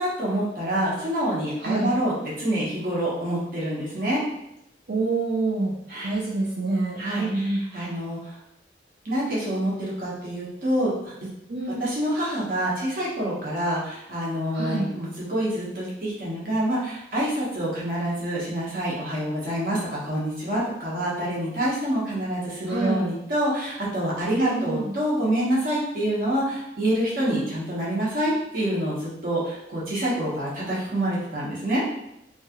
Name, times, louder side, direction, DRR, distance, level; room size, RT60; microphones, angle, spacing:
voice 1, 0.0-4.2 5.9-6.1 7.0-8.2 9.0-10.9 11.8-31.8, right 1 dB, 50° right, -6 dB, 1.0 m, -27 dB
voice 2, 1.6-1.9 4.9-5.8 6.0-7.6 11.5-11.9 14.5-14.9 22.7-23.0 24.4-24.9 27.2-27.5, right 3 dB, 65° right, -5 dB, 0.5 m, -27 dB
3.0 x 2.3 x 2.9 m, 0.82 s
head